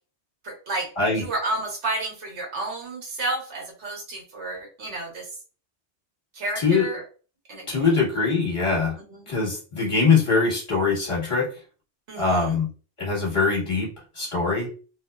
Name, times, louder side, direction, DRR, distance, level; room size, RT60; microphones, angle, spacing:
voice 1, 0.4-0.9 1.2-5.3 6.3-7.0 7.5-8.1 9.1-9.2 12.1-12.6, right 2 dB, 75° right, -1 dB, 1.2 m, -31 dB
voice 2, 6.6-6.9 7.7-9.0 9.3-11.5 12.2-12.7 13.0-13.9 14.1-14.7, left 4 dB, 30° left, -4 dB, 1.2 m, -22 dB
2.6 x 2.0 x 2.2 m, 0.36 s
omnidirectional pair, 1.2 m